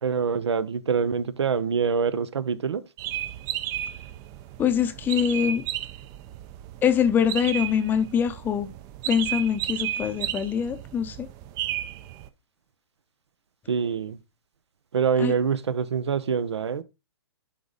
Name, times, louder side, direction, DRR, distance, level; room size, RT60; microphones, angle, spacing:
voice 1, 0.0-2.8 13.7-14.2 14.9-16.8, right 6 dB, 80° right, 0.8 m, -25 dB
sound 1, 3.0-12.3, right 12 dB, 25° right, 0.5 m, -33 dB
voice 2, 4.6-5.6 6.8-8.7 9.1-11.3 15.2-15.3, left 8 dB, 15° left, 0.6 m, -24 dB
10.0 x 3.7 x 4.0 m
hypercardioid pair, 140°, 14 cm